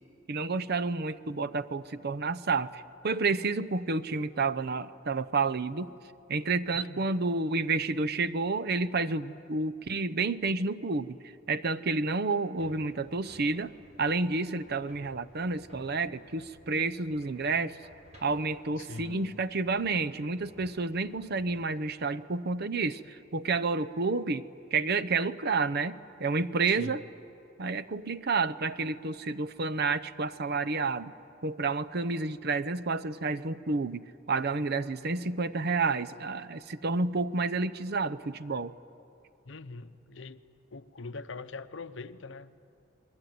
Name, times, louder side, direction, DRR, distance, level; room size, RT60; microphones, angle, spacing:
voice 1, 0.3-5.9 6.3-11.2 11.5-13.7 14.0-17.8 18.2-24.4 24.7-27.0 27.6-31.1 31.4-38.7, right 3 dB, 55° right, 13 dB, 0.7 m, -30 dB
voice 2, 6.7-7.2 18.8-19.4 26.6-27.0 39.5-40.4 40.7-42.5, left 3 dB, 70° left, 11 dB, 0.9 m, -43 dB
sound 1, 12.5-21.7, equal, 35° right, 6.0 m, -57 dB
28.5 x 21.5 x 9.5 m, 2.6 s
head